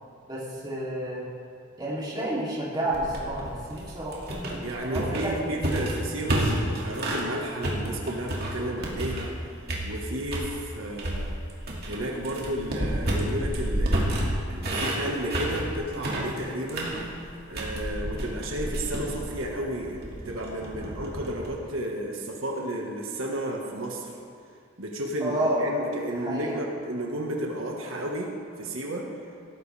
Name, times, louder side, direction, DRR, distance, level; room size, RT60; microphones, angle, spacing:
voice 1, 0.3-1.2 1.8-4.3 4.8-5.6 25.2-25.7 26.1-26.6, right 1 dB, 20° right, -7 dB, 3.0 m, -30 dB
sound 1, 2.9-7.3 7.6-9.4 9.7-10.5 11.0-21.5, right 1 dB, 50° right, 2.4 m, -30 dB
voice 2, 4.6-9.3 9.8-11.4 11.9-17.0 17.5-24.1 24.8-28.3 28.6-29.1, right 1 dB, 85° right, 0 dB, 1.6 m, -32 dB
17.5 x 14.0 x 3.5 m, 2.3 s
head